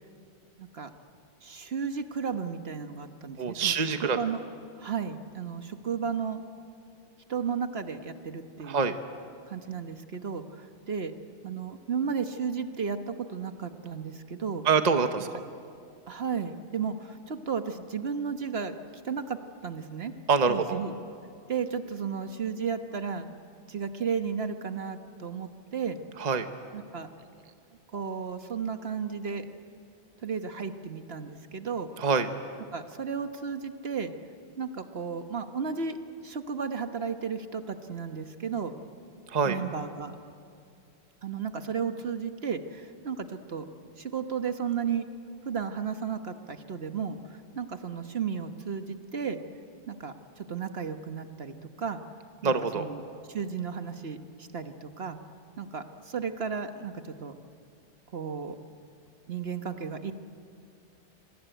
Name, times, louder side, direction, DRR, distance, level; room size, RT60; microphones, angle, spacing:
voice 1, 0.6-0.9 1.4-4.4 4.8-6.4 7.3-8.9 9.5-11.1 11.4-14.6 16.1-18.7 19.0-20.1 20.5-20.9 21.5-23.3 23.7-26.0 26.7-27.1 27.9-29.5 30.2-31.9 32.7-34.1 34.6-36.0 36.2-38.7 39.4-40.1 41.2-43.6 44.0-45.1 45.4-49.4 49.9-52.0 52.4-53.0 53.3-55.2 55.6-56.9 57.2-57.3 58.1-58.6 59.3-60.1, right 6 dB, 60° right, 7 dB, 1.4 m, -34 dB
voice 2, 3.4-4.2 8.6-9.0 14.6-15.3 20.3-20.8 26.2-26.5 32.0-32.3 39.3-39.6 52.4-52.8, right 5 dB, 40° right, 8 dB, 1.1 m, -25 dB
26.5 x 23.0 x 9.2 m, 2.4 s
omnidirectional pair, 1.2 m